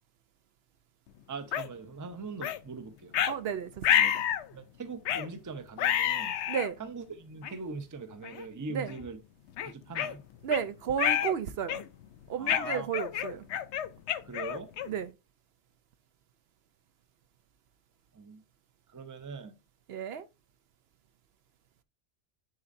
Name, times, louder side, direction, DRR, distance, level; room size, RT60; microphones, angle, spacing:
voice 1, 1.3-3.1 4.5-6.4 6.8-9.2 9.6-10.3 12.4-12.9 14.2-14.7 18.1-18.4 18.9-19.5, right 4 dB, 20° right, 0.5 m, -41 dB
sound 1, 1.5-1.7 2.4-2.6 3.1-3.3 3.8-4.5 5.1-5.3 5.8-6.7 7.4-7.5 8.2-8.5 8.9-9.0 9.6-10.6 11.0-11.4 11.7-12.0 12.5-15.0, left 10 dB, 80° left, 0.9 m, -29 dB
voice 2, 3.3-4.1 6.5-6.8 8.7-8.9 10.4-11.8 12.3-13.4 14.9-15.1 19.9-20.3, right 8 dB, 70° right, 0.8 m, -33 dB
10.5 x 4.0 x 2.6 m
omnidirectional pair, 1.2 m